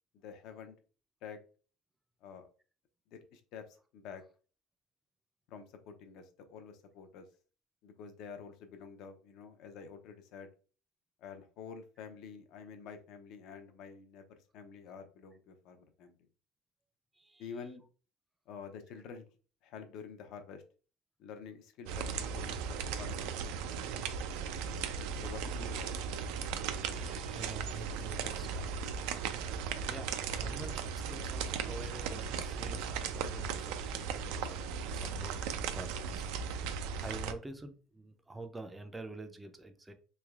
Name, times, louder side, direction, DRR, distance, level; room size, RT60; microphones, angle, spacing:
voice 1, 0.1-0.8 1.2-1.4 2.2-2.5 3.1-4.2 5.5-7.2 7.8-10.5 11.2-16.2 17.4-17.8 18.5-19.2 19.6-20.6 21.2-23.3 25.2-25.9, left 6 dB, 60° left, 0.6 m, -48 dB
voice 2, 17.1-17.5 26.8-34.6 34.9-35.4 35.7-39.9, right 2 dB, 10° right, 0.4 m, -48 dB
sound 1, 21.9-37.3, right 6 dB, 75° right, 0.3 m, -37 dB
3.2 x 3.0 x 2.3 m
cardioid pair, 140°, 0 cm